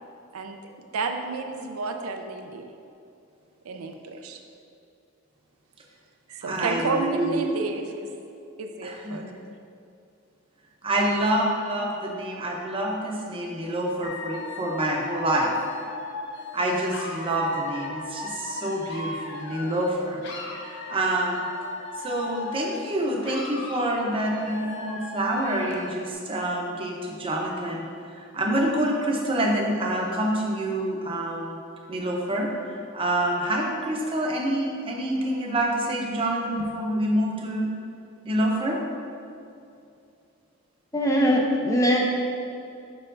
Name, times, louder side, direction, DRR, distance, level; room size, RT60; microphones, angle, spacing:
voice 1, 0.9-2.7 3.6-4.4 6.3-8.1 8.6-9.2, right 4 dB, 80° right, 5 dB, 0.5 m, -31 dB
voice 2, 6.5-7.5 8.8-9.3 10.8-15.5 16.5-20.2 20.5-21.5 22.0-27.9 28.3-31.6 31.9-37.7 38.2-38.8, right 1 dB, 25° right, -1 dB, 0.7 m, -27 dB
Dog / Alarm, 14.0-19.9 20.2-22.9 23.2-25.9, left 3 dB, 55° left, 0.8 m, -37 dB
voice 3, 40.9-42.0, equal, 15° left, -1 dB, 0.5 m, -21 dB
6.8 x 5.6 x 2.5 m, 2.6 s
head